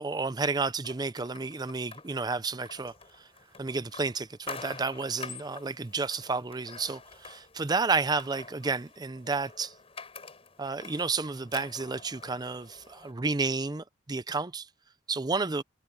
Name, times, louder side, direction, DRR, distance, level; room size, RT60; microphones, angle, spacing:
voice 1, 0.0-2.9 3.6-9.7 10.6-14.7 15.1-15.6, right 4 dB, 20° right, 0.5 m, -31 dB
sound 1, 0.8-13.1, left 5 dB, 35° left, 5.2 m, -47 dB
head